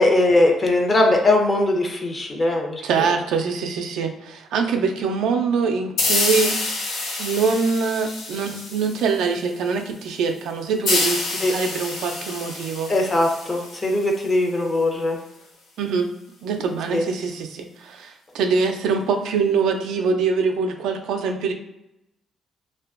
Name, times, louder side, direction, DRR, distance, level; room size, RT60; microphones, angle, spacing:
voice 1, 0.0-3.1 11.4-11.5 12.9-15.2 16.9-17.0, left 2 dB, 30° left, 1 dB, 0.6 m, -20 dB
voice 2, 2.8-6.6 7.2-12.9 15.8-16.1 16.4-21.5, right 5 dB, 85° right, 4 dB, 0.3 m, -24 dB
sound 1, 6.0-9.4 10.8-14.3, left 3 dB, 85° left, 0.5 m, -27 dB
2.6 x 2.2 x 2.4 m, 0.87 s
cardioid pair, 90°, 0 cm